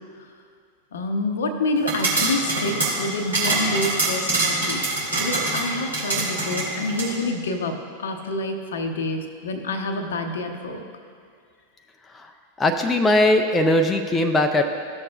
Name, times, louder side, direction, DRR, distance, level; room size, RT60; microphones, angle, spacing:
voice 1, 0.9-4.8 5.2-10.8, left 2 dB, 65° left, 6 dB, 0.8 m, -27 dB
sound 1, 1.8-7.1, right 2 dB, 70° right, 2.3 m, -25 dB
voice 2, 12.6-14.6, left 1 dB, 15° left, 4 dB, 0.5 m, -19 dB
15.0 x 6.6 x 2.4 m, 2.2 s
figure-of-eight pair, 90°, 0 cm